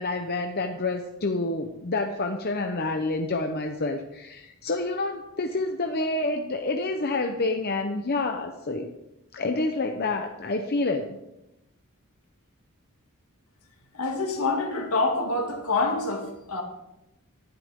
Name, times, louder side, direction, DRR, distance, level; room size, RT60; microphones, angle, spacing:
voice 1, 0.0-8.9 9.3-11.2, left 2 dB, 45° left, 4 dB, 0.9 m, -28 dB
voice 2, 13.9-16.6, left 3 dB, 70° left, 3 dB, 2.4 m, -26 dB
18.0 x 11.5 x 3.7 m, 0.90 s
head